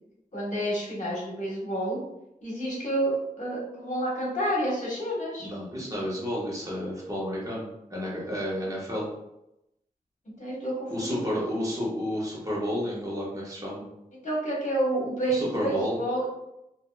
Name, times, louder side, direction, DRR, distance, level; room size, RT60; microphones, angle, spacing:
voice 1, 0.3-2.0 2.4-5.5 10.4-11.4 14.2-16.3, right 1 dB, 55° left, -5 dB, 1.2 m, -29 dB
voice 2, 5.4-9.1 10.9-13.9 15.3-16.0, equal, 25° right, -6 dB, 1.1 m, -31 dB
2.8 x 2.6 x 2.2 m, 0.87 s
wide cardioid pair, 65°, 15 cm